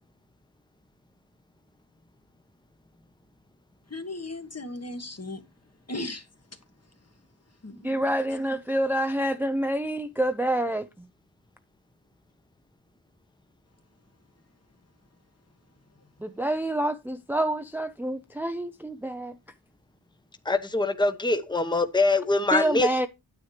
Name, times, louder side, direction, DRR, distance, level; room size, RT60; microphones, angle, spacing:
voice 1, 3.9-5.4 5.9-6.3 7.6-8.0, left 2 dB, 35° left, 1.5 m, -36 dB
voice 2, 7.8-11.1 16.2-19.4 22.5-23.1, right 1 dB, 5° right, 0.6 m, -27 dB
voice 3, 20.4-23.1, left 2 dB, 10° left, 1.0 m, -24 dB
9.5 x 9.4 x 3.2 m
wide cardioid pair, 65°, 42 cm